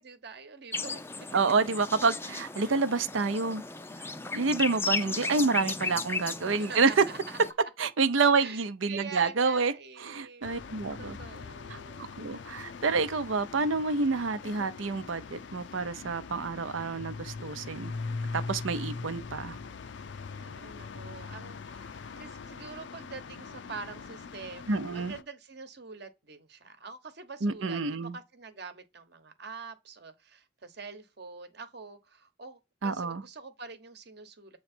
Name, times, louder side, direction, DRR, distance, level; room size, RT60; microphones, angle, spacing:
voice 1, 0.0-1.3 2.6-2.8 6.5-7.4 8.3-10.5 11.0-12.1 20.4-34.6, right 4 dB, 60° right, 1.1 m, -45 dB
sound 1, 0.7-7.5, left 3 dB, 10° left, 0.4 m, -35 dB
voice 2, 1.3-3.6 4.3-7.0 7.8-9.7 10.0-11.2 11.7-11.8 12.2-17.9 18.3-19.6 24.7-25.1 27.4-28.2 32.8-33.2, right 4 dB, 85° right, 0.7 m, -28 dB
sound 2, 10.4-25.2, left 4 dB, 65° left, 0.5 m, -41 dB
7.9 x 3.2 x 4.3 m
head